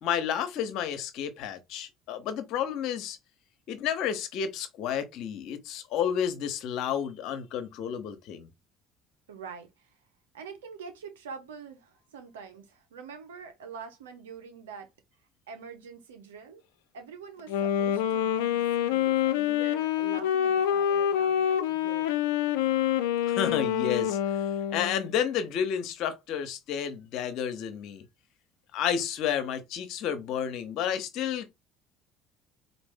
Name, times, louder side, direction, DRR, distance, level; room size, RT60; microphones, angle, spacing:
voice 1, 0.0-3.2 3.7-8.5 23.3-24.2 24.7-28.0 28.7-31.5, left 8 dB, 65° left, 0.9 m, -31 dB
voice 2, 9.3-9.9 10.3-14.9 15.5-16.6 16.9-22.2, right 6 dB, 90° right, 0.8 m, -45 dB
Wind instrument woodwind instrument, 17.4-25.1, left 10 dB, 85° left, 0.4 m, -26 dB
4.1 x 2.6 x 3.4 m
hypercardioid pair, 65°, 0 cm